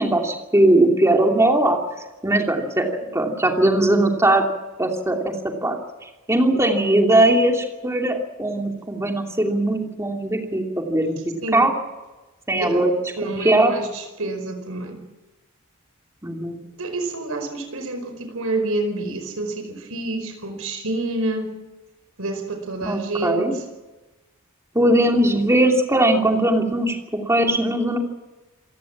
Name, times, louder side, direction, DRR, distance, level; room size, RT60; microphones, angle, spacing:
voice 1, 0.0-1.8 2.2-4.5 4.8-5.3 5.6-5.8 6.0-11.2 11.5-11.7 12.5-12.9 13.2-13.7 16.2-16.6 22.9-23.5 24.7-28.0, right 1 dB, 15° right, 2 dB, 2.9 m, -19 dB
voice 2, 13.2-15.0 16.8-21.5 22.2-23.6, right 2 dB, 80° right, 7 dB, 5.0 m, -28 dB
28.0 x 16.5 x 7.5 m, 1.1 s
head